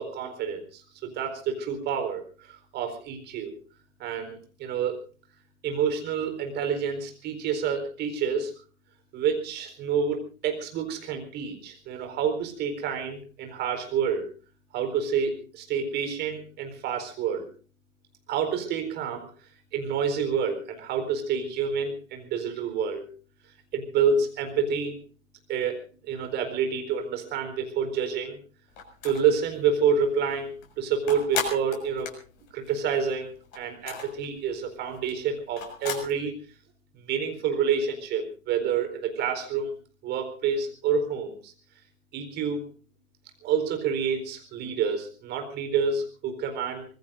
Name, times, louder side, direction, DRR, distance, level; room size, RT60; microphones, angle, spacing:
voice 1, 0.0-3.5 4.0-5.0 5.6-8.5 9.1-14.3 14.7-17.5 18.3-19.3 19.7-23.1 23.7-25.0 25.5-28.4 29.0-30.5 30.8-32.1 32.5-36.3 37.1-39.7 40.0-41.5 42.1-42.6 43.4-46.9, right 6 dB, 25° right, 6 dB, 4.2 m, -28 dB
sound 1, 28.8-29.4 29.8-29.9 30.2-33.1 33.4-36.1, left 5 dB, 40° left, 6.4 m, -34 dB
25.5 x 20.5 x 2.6 m, 0.39 s
figure-of-eight pair, 120°, 40 cm